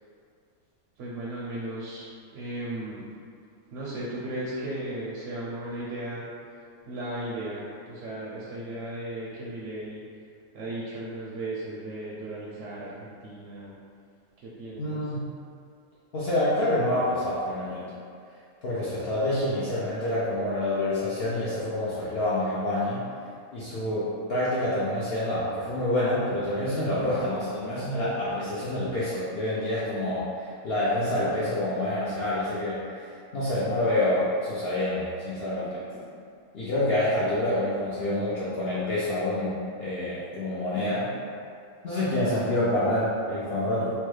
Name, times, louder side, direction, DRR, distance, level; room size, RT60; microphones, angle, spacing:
voice 1, 1.0-3.1 3.7-6.3 6.9-10.0 10.5-13.7 14.4-15.0, right 1 dB, 70° right, -6 dB, 0.8 m, -36 dB
voice 2, 14.8-15.3 16.1-18.0 18.6-23.0 23.5-35.8 36.5-41.1 41.8-43.9, left 1 dB, 65° left, -10 dB, 0.6 m, -27 dB
3.0 x 2.2 x 3.1 m, 2.4 s
omnidirectional pair, 1.5 m